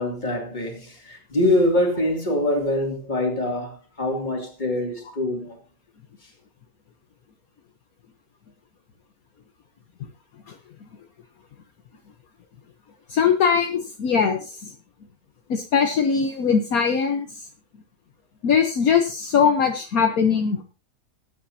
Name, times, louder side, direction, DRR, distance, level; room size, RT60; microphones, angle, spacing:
voice 1, 0.0-5.6 6.2-6.3, left 1 dB, 25° left, 2.8 m, -24 dB
voice 2, 13.1-14.7 15.5-17.3 18.4-20.6, left 6 dB, 65° left, 1.4 m, -21 dB
19.5 x 9.3 x 2.8 m
omnidirectional pair, 1.7 m